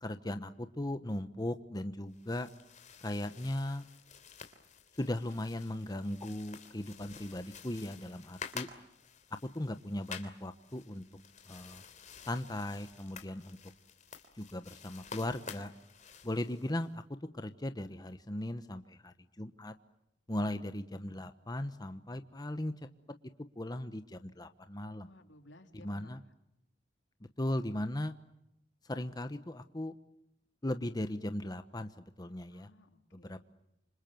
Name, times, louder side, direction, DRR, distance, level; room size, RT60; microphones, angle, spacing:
voice 1, 0.0-2.5 3.0-3.8 5.0-8.7 9.4-11.0 11.4-11.8 12.2-13.6 14.3-15.7 16.2-17.0 17.3-19.7 20.3-22.9 23.6-25.1 25.7-26.2 27.2-28.1 28.8-30.0 30.6-32.7 33.1-33.4, left 1 dB, 20° left, 9 dB, 1.1 m, -38 dB
sound 1, 2.1-16.9, left 6 dB, 40° left, 3.2 m, -50 dB
voice 2, 20.3-20.7 24.9-26.1 32.5-33.4, left 1 dB, 80° left, 6 dB, 3.4 m, -58 dB
28.0 x 26.5 x 7.8 m, 0.85 s
head